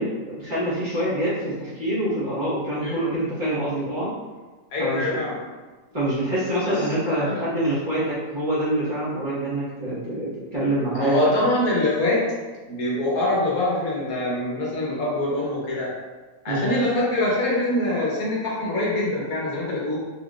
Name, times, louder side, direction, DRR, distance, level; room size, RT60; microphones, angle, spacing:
voice 1, 0.0-4.1 4.8-5.2 5.9-11.4 16.5-16.7, right 1 dB, 35° right, -10 dB, 1.4 m, -26 dB
voice 2, 4.7-5.4 6.6-6.7 7.1-7.3 10.9-12.2 12.7-15.9 16.4-20.0, left 1 dB, 75° left, -5 dB, 1.5 m, -24 dB
4.0 x 3.6 x 2.4 m, 1.3 s
omnidirectional pair, 1.5 m